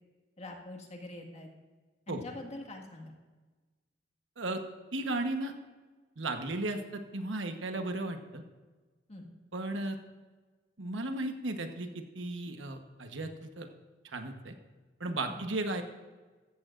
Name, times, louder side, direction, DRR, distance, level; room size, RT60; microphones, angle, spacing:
voice 1, 0.4-1.5 2.1-3.1 9.1-9.3 15.3-15.4, left 2 dB, 35° left, 2 dB, 1.7 m, -44 dB
voice 2, 4.9-5.5 6.2-8.4 9.5-10.0 10.8-13.7 14.0-14.5 15.0-15.8, right 2 dB, 85° right, 6 dB, 1.1 m, -35 dB
14.5 x 14.5 x 2.5 m, 1.3 s
head